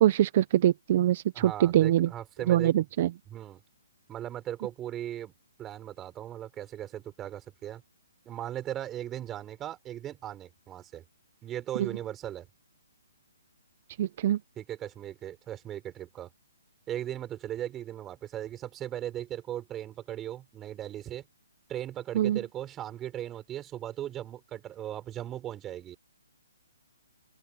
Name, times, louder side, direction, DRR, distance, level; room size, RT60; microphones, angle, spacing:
voice 1, 0.0-2.1 2.5-3.1 11.8-11.9 14.0-14.4 22.1-22.4, right 12 dB, 40° right, 0.8 m, -23 dB
voice 2, 1.3-2.7 3.3-3.6 4.1-5.3 5.6-7.8 8.3-11.0 11.4-12.5 14.6-16.3 16.9-21.2 21.7-26.0, right 12 dB, 15° right, 6.0 m, -38 dB
open air
hypercardioid pair, 155°, 0 cm